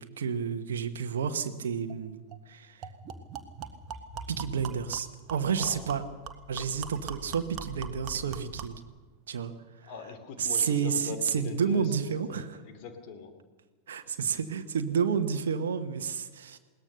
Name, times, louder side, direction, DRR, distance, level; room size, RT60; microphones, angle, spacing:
voice 1, 0.0-2.9 4.3-6.0 6.5-8.8 9.3-9.5 9.8-9.9 10.4-12.6 13.9-16.6, right 6 dB, 65° right, 7 dB, 1.3 m, -30 dB
sound 1, 1.9-2.0 2.3-2.4 2.8-8.8, right 6 dB, 35° right, 1.6 m, -42 dB
voice 2, 5.5-6.0 6.5-6.7 9.8-13.3, left 5 dB, 45° left, 7 dB, 3.0 m, -42 dB
21.0 x 18.5 x 6.7 m, 1.3 s
figure-of-eight pair, 90°, 0 cm